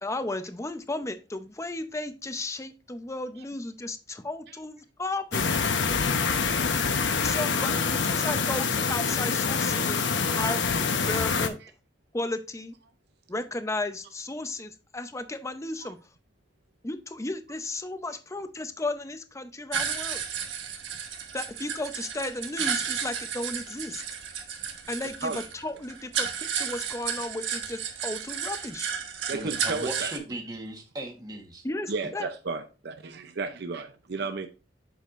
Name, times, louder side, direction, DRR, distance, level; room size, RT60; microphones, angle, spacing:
voice 1, 0.0-5.6 7.2-11.6 12.1-12.7 13.3-16.0 16.8-20.2 21.3-24.0 24.9-26.3 26.5-28.9 31.6-32.3, left 2 dB, 15° left, 0.6 m, -34 dB
sound 1, 5.3-11.5, left 5 dB, 75° left, 0.9 m, -26 dB
voice 2, 6.0-6.4 11.6-11.7 15.8-15.9 25.2-25.4 29.3-30.1 31.9-34.5, right 3 dB, 60° right, 0.6 m, -34 dB
sound 2, 19.7-30.2, right 7 dB, 80° right, 1.4 m, -33 dB
voice 3, 29.3-31.6, right 1 dB, 20° right, 1.4 m, -37 dB
8.2 x 6.4 x 2.5 m
head